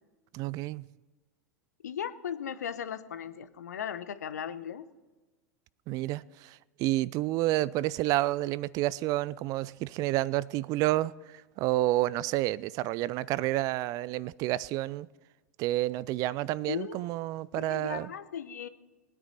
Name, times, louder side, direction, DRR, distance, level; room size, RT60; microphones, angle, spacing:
voice 1, 0.3-0.9 5.9-15.1 15.6-18.1, right 16 dB, 40° right, 0.4 m, -30 dB
voice 2, 1.8-4.9 16.7-17.0 17.6-18.7, left 8 dB, 75° left, 0.8 m, -37 dB
19.5 x 9.7 x 4.1 m
figure-of-eight pair, 90°, 9 cm